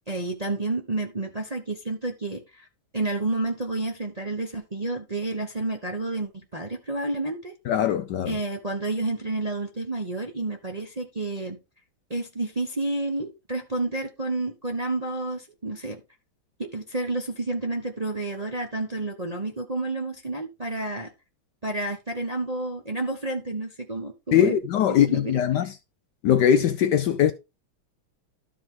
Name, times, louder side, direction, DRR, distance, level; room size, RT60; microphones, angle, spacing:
voice 1, 0.1-2.7 2.9-7.5 8.3-11.6 12.1-16.0 16.6-21.1 21.6-24.5 24.9-25.7, right 2 dB, 25° right, 0.8 m, -30 dB
voice 2, 7.7-8.4 24.3-25.7 26.2-27.3, left 9 dB, 70° left, 1.1 m, -21 dB
12.5 x 5.3 x 3.8 m
omnidirectional pair, 2.3 m